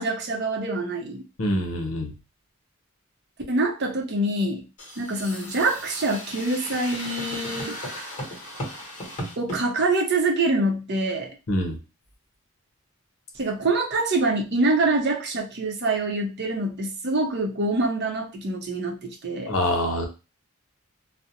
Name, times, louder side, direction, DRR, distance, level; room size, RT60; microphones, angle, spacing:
voice 1, 0.0-1.3 3.5-4.7 5.0-7.8 9.4-11.4 13.3-19.5, right 2 dB, 50° right, 2 dB, 0.6 m, -25 dB
voice 2, 1.4-2.1 11.5-11.8 19.5-20.1, left 1 dB, 65° left, 3 dB, 0.7 m, -25 dB
sound 1, 4.8-9.6, equal, 35° left, 1.0 m, -36 dB
2.4 x 2.0 x 2.7 m, 0.30 s
head